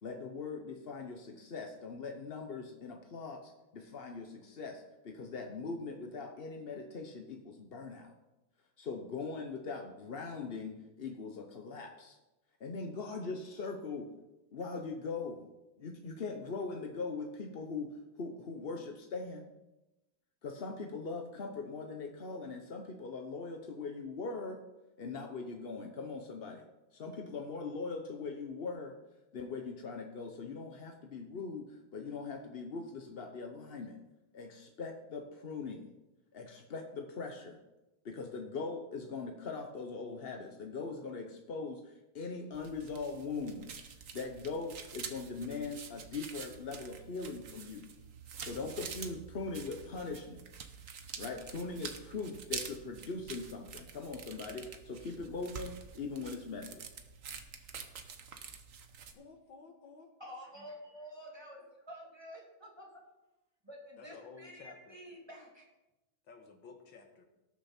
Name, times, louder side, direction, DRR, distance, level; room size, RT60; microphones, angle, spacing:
voice 1, 0.0-8.1 8.8-12.2 12.6-14.1 14.5-15.5 15.8-19.5 20.4-24.6 25.0-26.6 26.9-28.9 29.3-34.0 34.3-35.8 36.3-37.6 38.0-43.8 44.1-47.8 48.4-50.4 51.2-56.8, left 4 dB, 50° left, 3 dB, 0.7 m, -41 dB
sound 1, 42.5-59.1, right 6 dB, 50° right, 1.1 m, -47 dB
voice 2, 59.1-60.1 64.0-65.0 66.3-67.3, left 5 dB, 75° left, 3 dB, 2.2 m, -53 dB
voice 3, 60.2-62.9 63.6-65.7, equal, 10° right, -2 dB, 2.5 m, -49 dB
19.0 x 6.8 x 4.4 m, 1.0 s
omnidirectional pair, 2.2 m